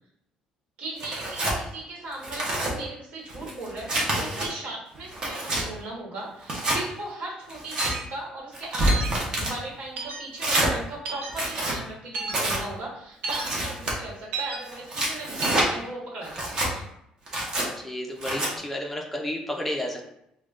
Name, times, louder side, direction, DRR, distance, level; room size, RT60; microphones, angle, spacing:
voice 1, 0.8-16.9, right 2 dB, 60° right, -5 dB, 1.2 m, -38 dB
Tearing, 1.0-1.6 2.1-2.7 3.3-4.5 4.9-5.6 6.4-6.8 7.5-7.9 8.5-9.5 10.4-10.7 11.3-11.8 12.3-12.6 13.3-13.9 14.7-15.7 16.3-16.7 17.3-17.7 18.2-18.5, right 1 dB, 30° right, 0.7 m, -27 dB
sound 1, 7.8-8.0 8.9-9.1 10.0-10.2 11.1-11.3 12.1-12.3 13.2-13.4 14.3-14.6 15.4-15.7, right 3 dB, 85° right, 0.6 m, -31 dB
voice 2, 17.8-20.1, left 1 dB, 5° left, 0 dB, 0.4 m, -32 dB
4.8 x 2.1 x 2.4 m, 0.79 s
cardioid pair, 175°, 2 cm